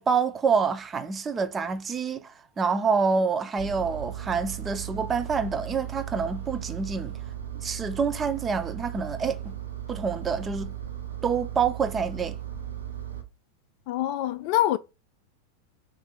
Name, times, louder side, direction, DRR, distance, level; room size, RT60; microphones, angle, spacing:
voice 1, 0.0-7.2 7.6-9.5 9.9-10.7 11.2-12.4, right 5 dB, 20° right, 0.5 m, -27 dB
Engine, 3.6-13.2, right 11 dB, 70° right, 0.8 m, -36 dB
voice 2, 13.9-14.8, left 13 dB, 45° left, 0.3 m, -25 dB
4.6 x 2.6 x 3.8 m
figure-of-eight pair, 90°, 0 cm